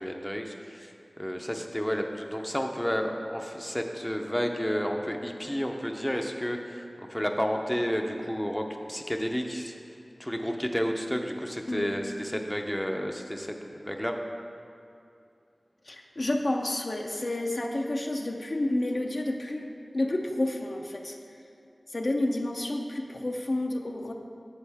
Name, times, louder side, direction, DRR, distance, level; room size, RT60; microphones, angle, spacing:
voice 1, 0.0-9.8 10.2-14.2, equal, 10° left, 3 dB, 0.6 m, -31 dB
voice 2, 15.8-19.7 19.9-21.2 21.9-24.1, left 1 dB, 60° left, 2 dB, 0.7 m, -30 dB
9.8 x 7.2 x 3.5 m, 2.7 s
wide cardioid pair, 45°, 0 cm